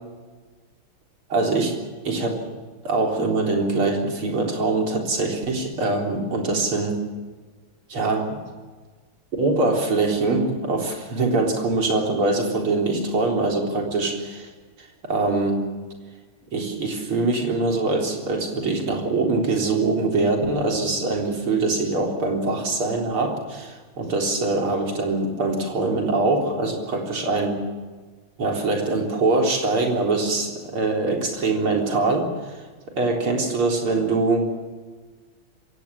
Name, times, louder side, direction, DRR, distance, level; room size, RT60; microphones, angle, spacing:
voice 1, 1.3-1.7 2.0-2.4 2.8-7.0 7.9-8.4 9.4-14.5 14.8-15.7 16.5-27.6 28.4-32.6 33.0-34.5, right 3 dB, 75° right, 1 dB, 4.6 m, -23 dB
26.5 x 16.5 x 7.3 m, 1.4 s
omnidirectional pair, 2.4 m